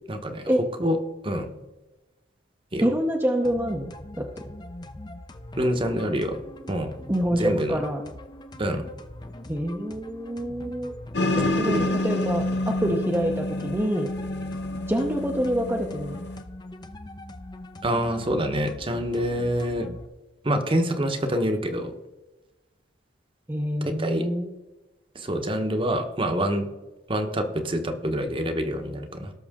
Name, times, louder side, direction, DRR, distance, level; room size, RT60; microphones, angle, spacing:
voice 1, 0.1-0.5 0.8-1.0 1.2-1.5 2.7-2.9 5.5-6.4 6.7-6.9 7.3-7.8 8.6-8.9 11.4-11.9 17.8-19.9 20.4-21.9 23.8-24.3 25.1-26.7 27.1-29.3, equal, 30° right, 6 dB, 1.1 m, -26 dB
voice 2, 2.8-3.9 4.2-4.3 7.1-8.0 9.5-10.9 11.3-14.1 14.9-16.2 23.5-24.5, equal, 15° right, 1 dB, 0.8 m, -26 dB
sound 1, 3.4-20.1, left 1 dB, 25° left, 0.7 m, -42 dB
sound 2, 11.1-16.4, left 1 dB, 65° left, 0.9 m, -28 dB
18.5 x 6.3 x 3.7 m, 1.1 s
head